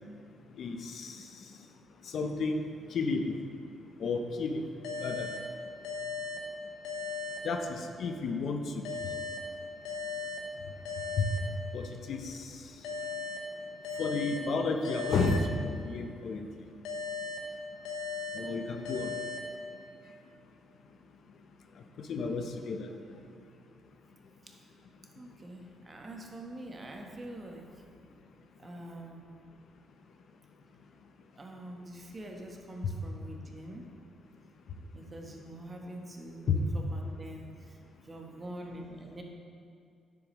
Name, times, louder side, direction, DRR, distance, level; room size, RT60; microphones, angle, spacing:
voice 1, 0.6-1.2 2.1-2.6 2.9-3.3 4.0-4.6 5.0-5.3 7.4-8.7 11.2-11.3 11.7-12.3 14.0-16.5 18.3-19.1 22.1-22.9 36.5-36.6, left 4 dB, 65° left, 5 dB, 0.6 m, -31 dB
sound 1, 4.8-8.2 8.8-12.2 12.8-16.2 16.8-20.2, left 4 dB, 85° left, 0.9 m, -39 dB
voice 2, 25.1-27.8 28.6-29.2 31.4-33.9 34.9-37.8 38.0-39.2, right 1 dB, 30° right, 1 dB, 1.1 m, -45 dB
9.6 x 7.1 x 3.1 m, 2.4 s
cardioid pair, 90°, 0 cm